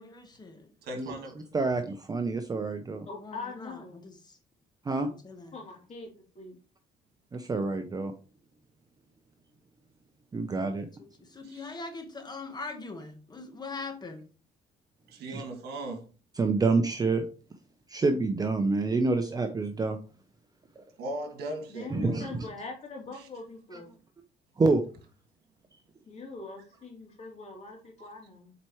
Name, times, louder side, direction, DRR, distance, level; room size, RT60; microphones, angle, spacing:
voice 1, 0.0-0.7 3.2-4.4 5.0-5.6 11.0-14.2, left 3 dB, 25° left, 1.2 m, -42 dB
voice 2, 0.8-1.4 11.4-11.8 15.1-16.0 21.0-22.2, right 1 dB, 75° right, 2.0 m, -38 dB
voice 3, 1.5-3.1 4.9-5.1 7.3-8.1 10.3-10.9 15.3-15.4 16.4-17.3 17.9-20.0 21.9-22.3 24.6-24.8, right 3 dB, 20° right, 0.7 m, -27 dB
voice 4, 3.1-4.0 5.5-6.1 6.3-6.6 21.7-24.0 26.1-28.5, left 3 dB, 40° left, 2.8 m, -42 dB
8.0 x 4.5 x 3.1 m
cardioid pair, 110°, 17 cm